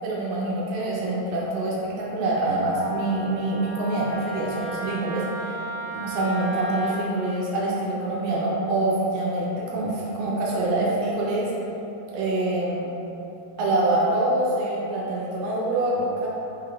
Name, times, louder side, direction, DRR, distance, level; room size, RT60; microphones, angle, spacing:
voice 1, 0.0-5.6 5.9-11.5 12.1-12.9 13.6-16.3, right 2 dB, 80° right, -5 dB, 2.1 m, -25 dB
Wind instrument woodwind instrument, 2.7-7.0, right 1 dB, 85° left, 2.5 m, -35 dB
5.6 x 3.4 x 2.3 m, 3.0 s
omnidirectional pair, 4.2 m